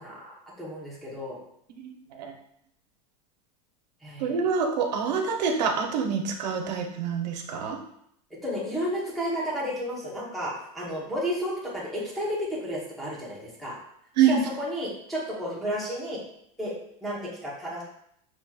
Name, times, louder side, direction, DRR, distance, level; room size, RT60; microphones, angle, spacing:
voice 1, 0.0-1.4 4.0-4.3 8.3-13.7 14.3-16.2 16.6-16.7 17.0-17.8, equal, ahead, -7 dB, 1.0 m, -32 dB
voice 2, 1.7-2.3 4.2-7.8 14.2-14.5, right 6 dB, 85° right, 2 dB, 1.0 m, -26 dB
7.2 x 3.0 x 2.4 m, 0.71 s
supercardioid pair, 180°, 21 cm